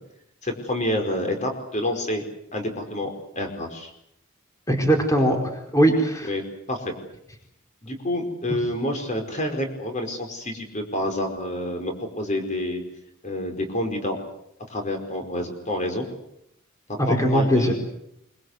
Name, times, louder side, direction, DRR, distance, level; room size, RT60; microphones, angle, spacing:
voice 1, 0.4-2.2 2.5-3.9 6.3-6.4 6.7-6.9 7.8-12.8 13.2-14.2 14.7-16.1 16.9-17.7, left 1 dB, 35° left, 4 dB, 4.8 m, -28 dB
voice 2, 4.7-5.4 5.7-6.3 17.0-17.7, equal, 15° left, 2 dB, 4.6 m, -20 dB
24.5 x 23.5 x 8.1 m, 0.77 s
head